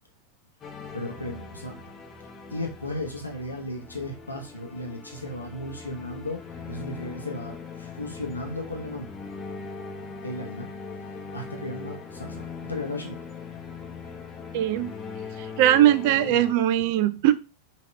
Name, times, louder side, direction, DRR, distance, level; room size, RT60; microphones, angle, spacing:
sound 1, 0.6-16.5, left 5 dB, 25° left, 0.9 m, -40 dB
voice 1, 0.9-1.8 2.5-6.4 6.7-9.1 10.2-10.7 11.3-13.2 16.1-16.5, left 1 dB, 85° left, 1 dB, 0.9 m, -35 dB
voice 2, 14.5-14.9 15.6-17.3, right 12 dB, 50° right, 14 dB, 0.4 m, -20 dB
5.5 x 2.9 x 3.3 m, 0.30 s
figure-of-eight pair, 90°, 0 cm